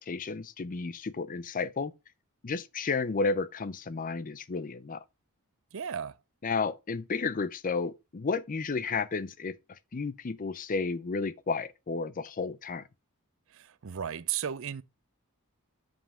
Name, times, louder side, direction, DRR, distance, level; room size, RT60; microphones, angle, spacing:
voice 1, 0.0-1.9 2.4-5.0 6.4-9.6 9.9-12.9, left 4 dB, 35° left, 0.5 m, -32 dB
voice 2, 5.7-6.1 13.5-14.8, right 8 dB, 60° right, 0.5 m, -34 dB
5.5 x 5.1 x 6.3 m
head